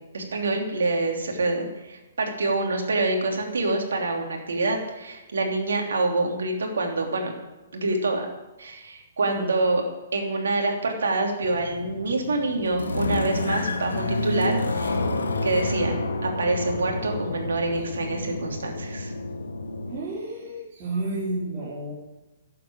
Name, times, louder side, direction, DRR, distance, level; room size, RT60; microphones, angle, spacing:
voice 1, 0.1-7.3 7.7-8.3 8.6-9.8 10.1-15.0 15.4-16.0 16.2-19.1, right 2 dB, 80° right, 2 dB, 3.1 m, -26 dB
sound 1, 11.4-20.0, left 2 dB, 85° left, 1.5 m, -29 dB
voice 2, 19.9-21.9, right 2 dB, 35° right, -6 dB, 4.3 m, -31 dB
11.5 x 7.9 x 8.7 m, 1.1 s
hypercardioid pair, 130°, 0 cm